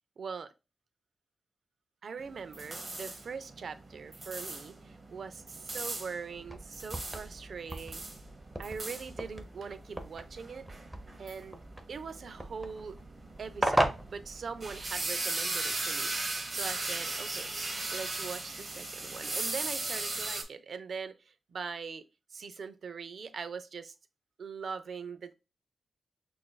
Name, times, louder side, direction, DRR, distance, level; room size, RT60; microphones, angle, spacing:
voice 1, 0.2-0.5 2.0-8.0 8.6-10.7 11.2-11.6 11.9-13.0 13.4-17.5 17.9-22.1 22.3-23.9 24.4-25.3, right 5 dB, 65° right, 0.5 m, -42 dB
sound 1, 2.2-20.4, right 2 dB, 35° right, 0.9 m, -38 dB
sound 2, 6.3-15.0, right 1 dB, 10° right, 0.7 m, -37 dB
5.9 x 2.5 x 2.3 m
wide cardioid pair, 100°, 0 cm